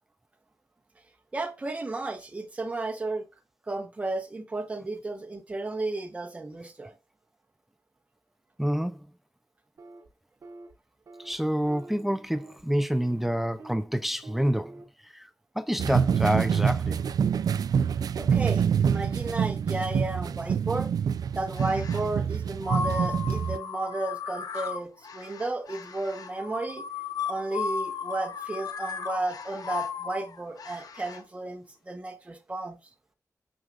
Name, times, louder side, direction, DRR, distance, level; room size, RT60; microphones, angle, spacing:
voice 1, 1.3-3.2 3.7-6.9 18.2-20.9 21.3-26.8 27.3-32.8, right 2 dB, 20° right, 0.9 m, -33 dB
voice 2, 8.6-9.0 11.2-14.7 15.1-15.3 15.6-17.0, equal, 5° right, 0.4 m, -27 dB
sound 1, 9.8-10.1 10.4-10.7 11.1-11.3 11.7-12.6 12.9-13.3 13.6-13.9 14.2-14.8, right 3 dB, 55° right, 1.0 m, -47 dB
sound 2, 15.8-23.6, right 7 dB, 85° right, 0.3 m, -26 dB
sound 3, 21.5-22.1 22.6-31.2, left 6 dB, 80° left, 0.8 m, -36 dB
6.4 x 6.2 x 2.4 m
wide cardioid pair, 180°, 6 cm